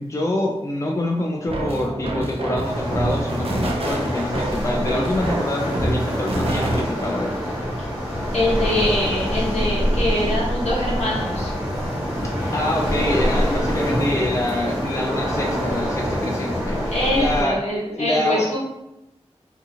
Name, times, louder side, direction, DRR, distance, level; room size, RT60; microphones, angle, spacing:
voice 1, 0.0-7.4 12.5-17.6 18.0-18.4, left 1 dB, 30° left, 0 dB, 0.4 m, -25 dB
sound 1, 1.5-7.1, right 1 dB, 60° right, 0.5 m, -27 dB
Waves surf, 2.6-17.4, equal, 15° right, 1.5 m, -25 dB
sound 2, 4.6-16.0, equal, 55° left, 1.2 m, -36 dB
voice 2, 8.3-11.5 16.9-18.6, left 1 dB, 75° left, -5 dB, 0.9 m, -23 dB
2.7 x 2.4 x 2.7 m, 0.90 s
wide cardioid pair, 50°, 11 cm